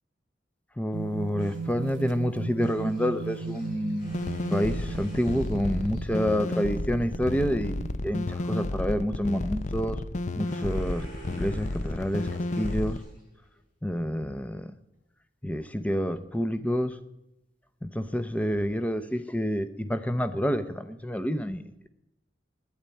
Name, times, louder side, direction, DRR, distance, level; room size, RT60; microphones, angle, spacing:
voice 1, 0.7-4.1 4.5-10.0 10.4-13.0 13.8-14.7 15.4-17.0 17.8-21.9, equal, 10° left, 11 dB, 0.7 m, -28 dB
sound 1, 0.9-8.0, right 5 dB, 85° right, 0.7 m, -38 dB
sound 2, 1.4-6.3 9.4-13.6, equal, 60° left, 6.2 m, -51 dB
sound 3, 4.1-13.0, left 2 dB, 40° left, 0.5 m, -32 dB
10.0 x 8.8 x 8.2 m, 0.86 s
head